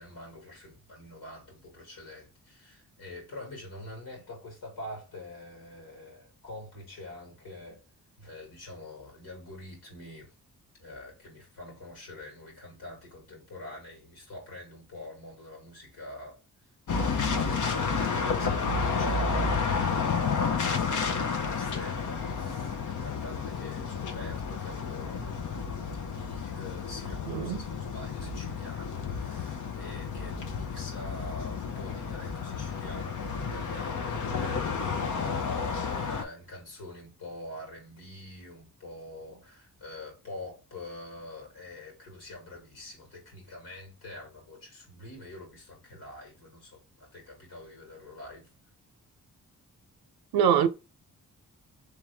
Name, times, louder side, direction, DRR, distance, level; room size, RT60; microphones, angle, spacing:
voice 1, 0.0-7.8 8.2-10.3 10.8-16.4 16.9-25.3 26.0-48.5, left 1 dB, 80° left, 2.1 m, -45 dB
sound 1, 16.9-36.2, left 5 dB, 55° left, 0.8 m, -31 dB
voice 2, 27.3-27.6 50.3-50.7, right 8 dB, 75° right, 0.6 m, -23 dB
3.5 x 3.1 x 3.4 m
supercardioid pair, 45°, 37 cm